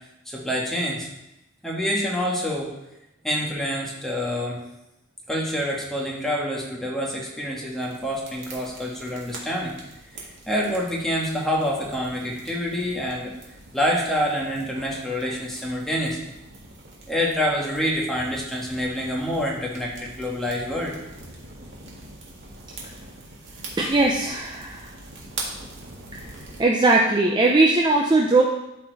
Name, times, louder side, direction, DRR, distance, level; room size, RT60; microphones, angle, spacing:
voice 1, 0.2-1.1 1.6-2.7 3.2-4.6 5.3-9.8 10.1-13.3 13.7-16.3 17.1-20.9, equal, ahead, -3 dB, 1.6 m, -27 dB
sound 1, 7.7-26.6, right 2 dB, 55° right, 1.9 m, -43 dB
voice 2, 23.8-24.9 26.1-26.3 26.6-28.4, right 2 dB, 20° right, 0 dB, 0.6 m, -19 dB
12.5 x 4.3 x 4.0 m, 0.90 s
head